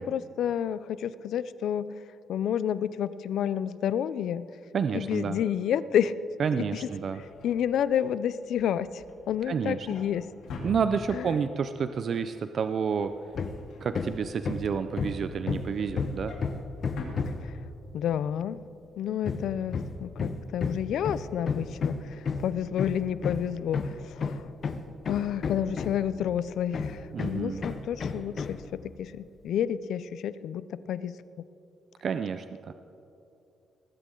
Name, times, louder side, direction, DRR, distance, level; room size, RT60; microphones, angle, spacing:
voice 1, 0.0-2.0 2.3-4.5 4.9-6.2 6.5-6.9 7.4-10.3 11.1-11.4 17.4-17.6 17.9-18.6 19.0-24.5 25.1-31.2, left 9 dB, 70° left, 16 dB, 0.4 m, -30 dB
voice 2, 4.7-5.4 6.4-7.2 9.5-9.9 10.6-13.1 13.8-16.3 27.1-27.7 32.0-32.7, right 6 dB, 45° right, 10 dB, 0.4 m, -29 dB
Drawer open or close, 6.6-11.4 11.8-12.1 12.4-14.6 15.0-18.0 18.4-18.6 18.8-18.9, left 2 dB, 90° left, 3.2 m, -45 dB
Hammer, 13.3-13.6 13.9-17.5 19.2-26.2 26.7-28.6, left 5 dB, 40° left, 0.8 m, -32 dB
19.0 x 15.5 x 3.8 m, 2.7 s
cardioid pair, 155°, 0 cm